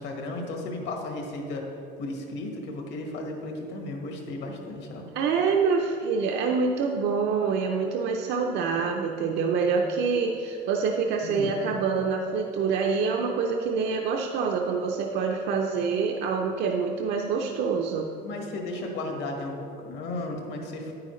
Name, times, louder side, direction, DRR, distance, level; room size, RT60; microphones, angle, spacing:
voice 1, 0.0-1.7 2.0-5.0 11.2-11.5 18.2-20.9, left 2 dB, 65° left, 2 dB, 1.5 m, -34 dB
voice 2, 5.1-18.1, right 5 dB, 60° right, 2 dB, 0.6 m, -26 dB
9.4 x 9.0 x 3.1 m, 2.8 s
cardioid pair, 155°, 20 cm